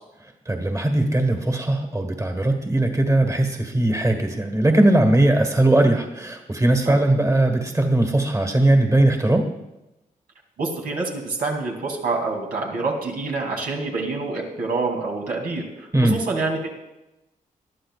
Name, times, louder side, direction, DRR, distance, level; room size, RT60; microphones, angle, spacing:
voice 1, 0.4-9.4 15.9-16.2, right 1 dB, 20° right, 4 dB, 1.6 m, -19 dB
voice 2, 10.6-16.7, right 3 dB, 90° right, -1 dB, 2.9 m, -27 dB
20.5 x 12.0 x 2.5 m, 0.96 s
cardioid pair, 90°, 15 cm